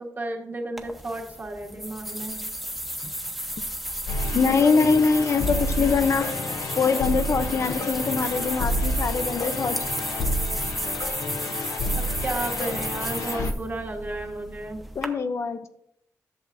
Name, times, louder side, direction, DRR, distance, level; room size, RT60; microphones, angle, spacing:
voice 1, 0.0-2.4 12.0-14.8, right 2 dB, 35° right, 1 dB, 1.4 m, -33 dB
sound 1, 0.8-15.1, equal, 5° right, 0.9 m, -33 dB
sound 2, 4.1-13.5, left 1 dB, 90° left, 0.8 m, -30 dB
voice 2, 4.3-6.3 6.8-9.8 15.0-15.7, left 5 dB, 55° left, 9 dB, 0.5 m, -23 dB
11.0 x 6.8 x 2.6 m, 0.74 s
cardioid pair, 95°, 6 cm